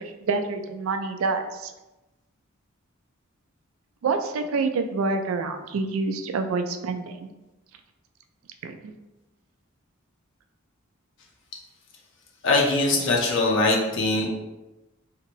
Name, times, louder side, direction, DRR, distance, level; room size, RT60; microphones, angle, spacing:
voice 1, 0.0-1.7 4.0-7.3 8.6-8.9, right 4 dB, 75° right, 6 dB, 0.3 m, -27 dB
voice 2, 12.4-14.3, left 2 dB, 60° left, -1 dB, 0.6 m, -22 dB
2.8 x 2.5 x 2.9 m, 1.0 s
head